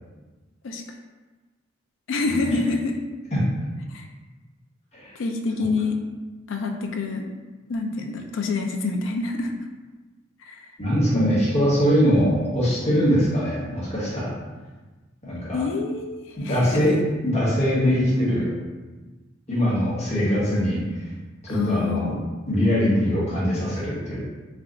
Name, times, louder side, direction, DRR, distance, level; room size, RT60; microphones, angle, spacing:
voice 1, 2.1-3.0 3.9-4.1 5.2-6.0 6.5-7.3 7.7-9.5 10.4-10.6 11.1-11.4 15.5-17.0 21.5-22.2, left 3 dB, 70° left, 3 dB, 0.4 m, -26 dB
voice 2, 10.8-14.3 15.2-15.6 16.4-17.0 17.2-18.6 19.5-21.1 21.4-22.1 22.5-24.2, equal, 35° left, -7 dB, 1.2 m, -22 dB
3.3 x 2.3 x 3.8 m, 1.2 s
head